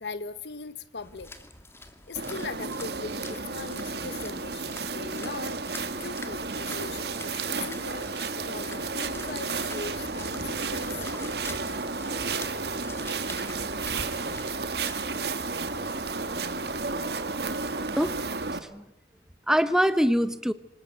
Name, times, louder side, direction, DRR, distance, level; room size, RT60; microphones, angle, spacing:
voice 1, 0.0-1.3 2.1-5.6 6.0-8.1 8.3-11.3, left 4 dB, 70° left, 14 dB, 0.9 m, -40 dB
sound 1, 1.0-15.0, left 2 dB, 15° left, 2.0 m, -46 dB
sound 2, 2.1-18.6, right 4 dB, 60° right, 1.8 m, -32 dB
sound 3, 8.3-18.7, right 2 dB, 85° right, 5.6 m, -53 dB
voice 2, 18.0-18.8 19.5-20.5, equal, 5° right, 13 dB, 0.8 m, -24 dB
26.0 x 19.5 x 8.0 m, 0.90 s
head